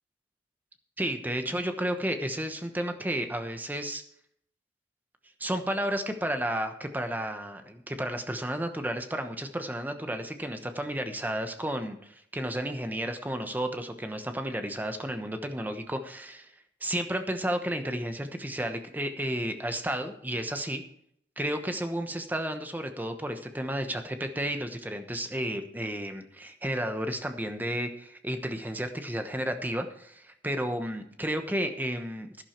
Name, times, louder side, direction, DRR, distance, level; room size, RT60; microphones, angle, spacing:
voice 1, 1.0-4.0 5.4-16.5 16.8-20.8 21.4-32.4, right 1 dB, 10° right, 7 dB, 1.0 m, -32 dB
11.5 x 11.0 x 4.5 m, 0.69 s
head